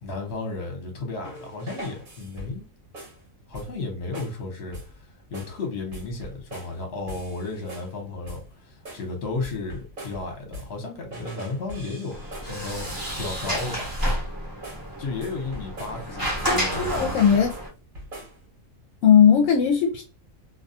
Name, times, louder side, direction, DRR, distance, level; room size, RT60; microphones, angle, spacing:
voice 1, 0.0-2.6 3.5-4.9 5.3-12.9 13.2-13.9 15.0-17.4, left 3 dB, 55° left, 1.1 m, -33 dB
sound 1, 1.2-2.7 2.9-3.2 3.5-3.9 4.1-4.4 4.7-5.0 5.3-5.6 5.9-6.8 7.1-8.0 8.3-8.5 8.9-10.8 11.1-13.8 14.0-14.3 14.6-14.9 15.2-16.6 16.9-17.6 17.9-18.4, equal, 45° right, 1.0 m, -41 dB
Sliding door, 12.1-17.7, equal, 20° right, 0.8 m, -30 dB
voice 2, 16.4-17.6 19.0-20.0, left 7 dB, 75° left, 0.9 m, -18 dB
2.4 x 2.3 x 2.6 m
omnidirectional pair, 1.4 m